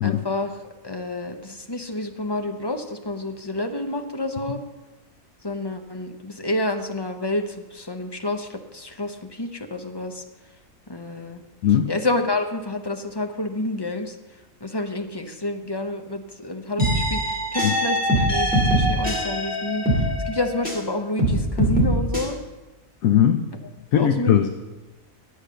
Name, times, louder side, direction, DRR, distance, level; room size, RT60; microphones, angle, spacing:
voice 1, 0.0-4.6 5.4-10.2 10.9-11.4 11.9-14.2 14.6-22.4 23.9-24.5, left 2 dB, 25° left, 5 dB, 0.7 m, -29 dB
sound 1, 16.8-20.9 21.2-22.2, equal, 5° right, 2.5 m, -22 dB
voice 2, 23.0-23.4 23.9-24.5, left 10 dB, 85° left, 7 dB, 1.1 m, -18 dB
11.5 x 8.4 x 6.4 m, 1.1 s
omnidirectional pair, 1.4 m